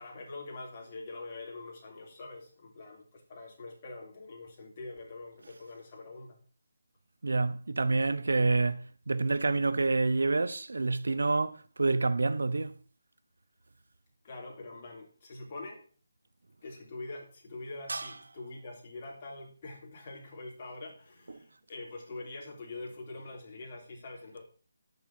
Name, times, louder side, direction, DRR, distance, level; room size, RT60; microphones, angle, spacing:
voice 1, 0.0-6.4 14.2-15.8 16.6-24.4, left 2 dB, 35° left, 3.6 m, -44 dB
voice 2, 7.2-12.7 17.9-18.1, right 3 dB, 80° right, 0.7 m, -28 dB
8.5 x 6.9 x 6.0 m
figure-of-eight pair, 165°, 0 cm